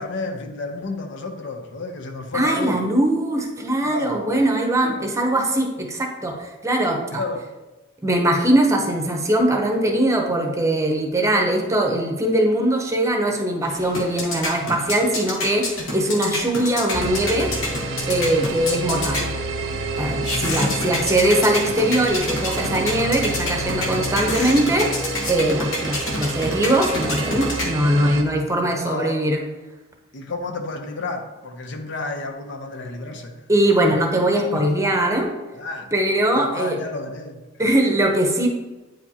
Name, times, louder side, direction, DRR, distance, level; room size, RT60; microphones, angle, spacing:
voice 1, 0.0-2.8 3.8-4.4 4.8-5.0 6.9-7.5 14.6-14.8 18.3-18.5 20.6-20.8 28.1-29.2 30.1-33.4 33.9-34.0 34.5-34.7 35.5-35.9 36.4-37.4 37.9-38.0, left 3 dB, 65° left, 5 dB, 0.7 m, -31 dB
voice 2, 2.3-7.2 8.0-17.5 18.1-19.3 19.9-24.9 25.3-29.4 33.5-35.3 35.9-36.8 37.6-38.5, right 1 dB, 15° right, 2 dB, 0.8 m, -21 dB
sound 1, 13.6-28.1, left 2 dB, 80° left, 1.3 m, -29 dB
sound 2, 16.9-28.2, right 2 dB, 70° right, 0.6 m, -29 dB
8.9 x 5.0 x 2.8 m, 1.1 s
head